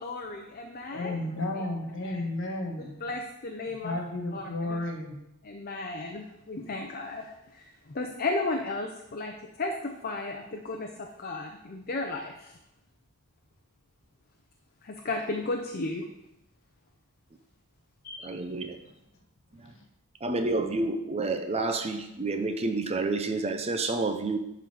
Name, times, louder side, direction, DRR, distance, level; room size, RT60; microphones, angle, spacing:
voice 1, 0.0-1.1 2.0-2.2 2.8-3.9 4.3-4.8 5.4-12.6 14.8-16.1 18.0-18.3, left 2 dB, 45° left, 2 dB, 0.7 m, -34 dB
voice 2, 0.9-2.9 3.8-5.1, left 2 dB, 60° left, 2 dB, 1.6 m, -32 dB
voice 3, 18.2-18.8 20.2-24.4, right 3 dB, 30° right, 7 dB, 0.6 m, -29 dB
11.5 x 4.0 x 4.9 m, 0.86 s
head